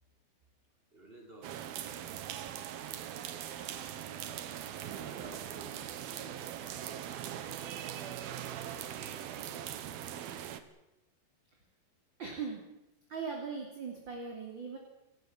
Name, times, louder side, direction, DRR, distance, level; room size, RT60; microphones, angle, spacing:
voice 1, 0.9-1.7 4.4-9.5, right 1 dB, 10° right, 1 dB, 5.2 m, -56 dB
sound 1, 1.4-10.6, right 10 dB, 65° right, 3.0 m, -41 dB
voice 2, 12.2-12.6 13.1-14.8, right 5 dB, 30° right, 1 dB, 3.3 m, -39 dB
29.0 x 14.0 x 8.9 m, 0.94 s
omnidirectional pair, 5.0 m